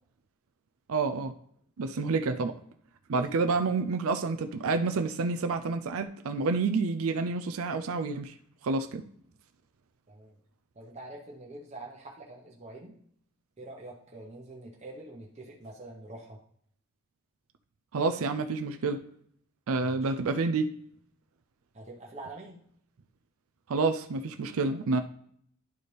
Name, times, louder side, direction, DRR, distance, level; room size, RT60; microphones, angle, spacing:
voice 1, 0.9-1.3 1.8-2.6 3.1-8.3 8.6-9.1 17.9-19.0 19.7-20.7 23.7-25.0, right 4 dB, 70° right, 8 dB, 0.4 m, -28 dB
voice 2, 10.7-13.0 13.6-16.4 19.8-20.1 21.7-22.6, right 2 dB, 30° right, -2 dB, 1.0 m, -45 dB
10.5 x 4.1 x 3.3 m, 0.65 s
head